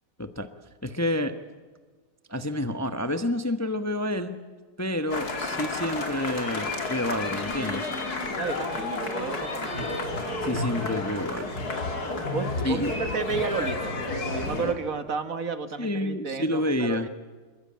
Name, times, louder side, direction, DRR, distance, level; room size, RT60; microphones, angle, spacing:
voice 1, 0.8-1.3 2.3-4.4 4.8-7.9 9.7-9.9 10.4-11.6 12.6-12.9 15.8-17.1, left 1 dB, 10° left, 9 dB, 1.0 m, -29 dB
sound 1, 5.1-14.7, left 2 dB, 60° left, 3.1 m, -31 dB
voice 2, 8.4-9.7 12.3-17.1, right 5 dB, 55° right, 10 dB, 1.8 m, -32 dB
27.0 x 22.0 x 8.7 m, 1.4 s
omnidirectional pair, 1.8 m